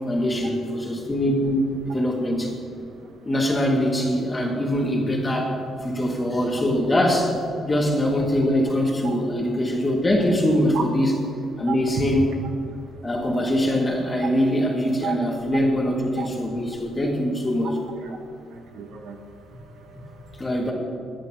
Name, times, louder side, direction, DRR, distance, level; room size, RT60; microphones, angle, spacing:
voice 1, 0.1-1.6 1.9-2.5 3.2-5.6 5.8-7.4 7.6-11.1 11.6-12.3 13.0-17.8 20.4-20.7, equal, 20° left, -1 dB, 2.2 m, -23 dB
voice 2, 11.7-12.0 15.0-15.1 16.2-16.3 18.0-18.2 18.5-20.5, right 7 dB, 75° right, 4 dB, 1.3 m, -34 dB
22.5 x 10.5 x 3.0 m, 2.5 s
cardioid pair, 135°, 0 cm